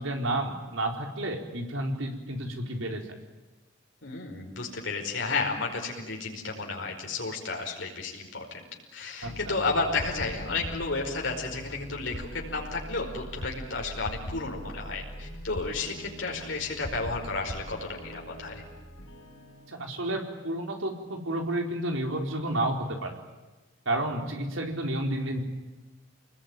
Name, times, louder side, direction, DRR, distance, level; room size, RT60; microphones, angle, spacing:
voice 1, 0.0-3.1 9.2-9.6 19.7-23.1 23.9-25.4, right 1 dB, 80° right, 3 dB, 4.3 m, -31 dB
voice 2, 4.0-8.6 8.9-18.6, left 3 dB, 65° left, 0 dB, 5.0 m, -32 dB
sound 1, 9.2-21.8, equal, 85° left, 6.2 m, -42 dB
28.5 x 20.5 x 9.2 m, 1.2 s
head